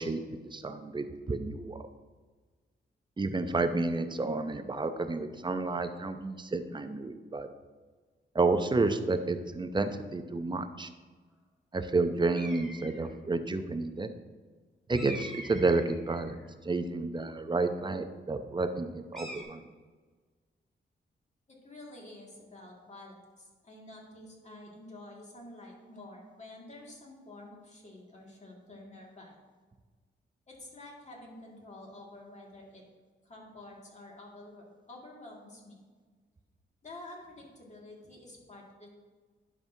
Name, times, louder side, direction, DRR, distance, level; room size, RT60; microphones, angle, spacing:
voice 1, 0.0-1.8 3.2-7.5 8.3-10.9 11.7-14.1 14.9-19.6, right 3 dB, 25° right, 8 dB, 0.6 m, -30 dB
sound 1, 12.3-13.1 14.9-16.5 19.1-19.4, equal, ahead, 1.4 m, -44 dB
voice 2, 21.5-29.3 30.5-32.8 33.2-35.8 36.8-38.9, left 1 dB, 35° left, -2 dB, 2.1 m, -49 dB
10.5 x 6.0 x 2.7 m, 1.4 s
cardioid pair, 90°, 20 cm